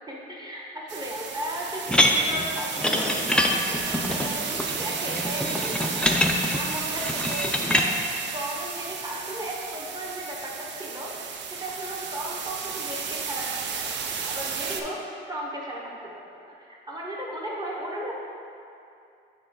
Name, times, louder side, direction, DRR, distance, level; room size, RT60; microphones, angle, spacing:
voice 1, 0.0-6.0 6.5-8.0 8.3-13.8 14.0-15.0 15.3-18.1, right 1 dB, 20° right, -4 dB, 1.2 m, -36 dB
sound 1, 0.9-14.8, right 6 dB, 65° right, 0.5 m, -33 dB
sound 2, 1.9-7.9, left 1 dB, 5° left, 0.4 m, -25 dB
6.8 x 3.6 x 3.8 m, 2.6 s
cardioid pair, 90°, 20 cm